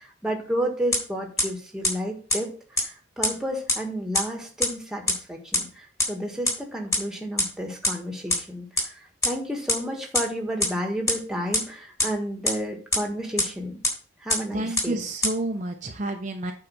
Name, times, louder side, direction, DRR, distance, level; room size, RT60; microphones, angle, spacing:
voice 1, 0.0-13.8 14.2-15.0, equal, 5° right, 2 dB, 1.6 m, -31 dB
sound 1, 0.9-1.0 1.4-1.5 1.8-1.9 2.3-2.4 2.8-2.9 3.2-3.3 3.7-3.8 4.1-4.2 4.6-4.7 5.1-5.2 5.5-5.6 6.0-6.1 6.4-6.5 6.9-7.0 7.4-7.5 7.8-7.9 8.3-8.4 8.8-8.9 9.2-9.3 9.7-9.8 10.1-10.2 10.6-10.7 11.1-11.2 11.5-11.6 12.0-12.1 12.5-12.6 12.9-13.0 13.4-13.5 13.8-13.9 14.3-14.4 14.8-14.9 15.2-15.3, left 2 dB, 15° left, 3.3 m, -21 dB
voice 2, 14.5-16.5, right 2 dB, 35° right, 3 dB, 0.7 m, -29 dB
8.8 x 4.8 x 6.5 m, 0.40 s
head